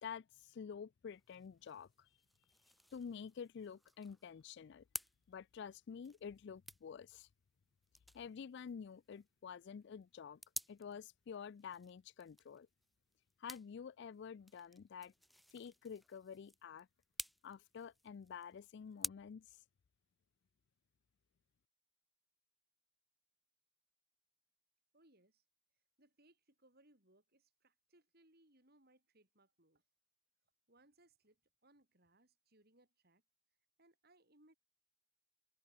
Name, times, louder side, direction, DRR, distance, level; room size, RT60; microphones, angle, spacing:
voice 1, 0.0-2.1 2.9-4.8 5.3-7.3 8.1-10.4 10.7-12.7 13.4-15.1 15.5-16.9 17.4-19.6, left 6 dB, 55° left, 0.3 m, -49 dB
sound 1, 1.1-19.1, equal, ahead, 1.1 m, -53 dB
voice 2, 24.9-25.4 26.0-29.8 30.7-33.2 33.8-34.5, right 1 dB, 45° right, 7.1 m, -70 dB
head